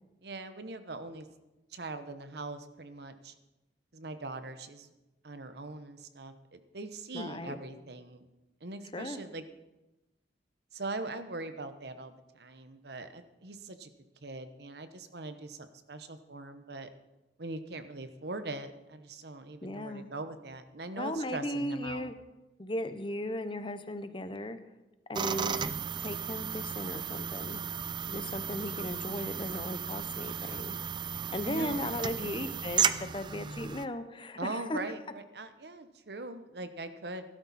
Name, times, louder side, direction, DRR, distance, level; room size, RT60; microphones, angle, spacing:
voice 1, 0.2-1.3 1.7-3.3 3.9-4.9 5.2-8.3 8.6-9.4 10.7-13.9 14.2-16.9 17.4-22.1 31.4-32.5 34.4-37.2, right 2 dB, 65° right, 10 dB, 1.0 m, -41 dB
voice 2, 7.1-7.6 8.9-9.2 19.6-20.1 20.9-22.2 22.6-24.6 25.1-25.6 26.0-27.6 28.1-30.8 31.3-34.8, left 1 dB, 30° left, 10 dB, 0.8 m, -37 dB
sound 1, 25.1-33.8, right 7 dB, 25° right, 0.4 m, -34 dB
16.0 x 13.0 x 4.2 m, 1.0 s
head